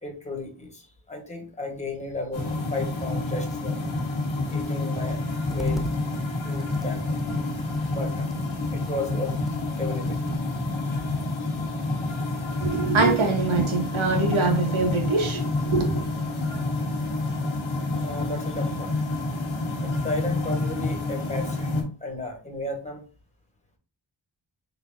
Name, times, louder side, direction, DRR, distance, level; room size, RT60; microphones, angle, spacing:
voice 1, 0.0-3.9 4.5-5.2 5.5-5.8 6.4-7.2 7.9-8.3 8.7-9.4 9.8-10.2 18.0-19.0 19.4-19.5 19.8-23.0, left 2 dB, 15° left, 1.2 m, -34 dB
sound 1, 2.3-21.8, left 2 dB, 90° left, 1.2 m, -28 dB
Computer keyboard, 5.4-6.0 6.4-11.3, right 1 dB, ahead, 0.4 m, -41 dB
voice 2, 12.6-16.0, right 3 dB, 90° right, 1.1 m, -24 dB
3.9 x 3.8 x 2.6 m
wide cardioid pair, 95°, 47 cm